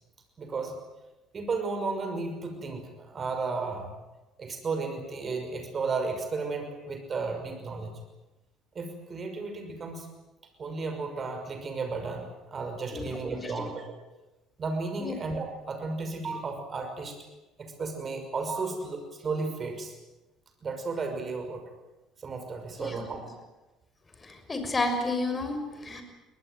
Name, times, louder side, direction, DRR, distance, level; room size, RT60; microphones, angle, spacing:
voice 1, 0.4-0.8 1.3-3.9 4.4-7.9 8.7-10.1 10.6-13.9 14.6-17.2 17.6-20.0 20.6-21.6 22.2-23.3, right 4 dB, 40° right, 6 dB, 5.9 m, -33 dB
voice 2, 13.3-13.6 15.0-15.1 22.8-23.0 24.2-26.0, left 2 dB, 25° left, 7 dB, 6.4 m, -31 dB
24.5 x 20.0 x 9.3 m, 1.0 s
hypercardioid pair, 55°, 0 cm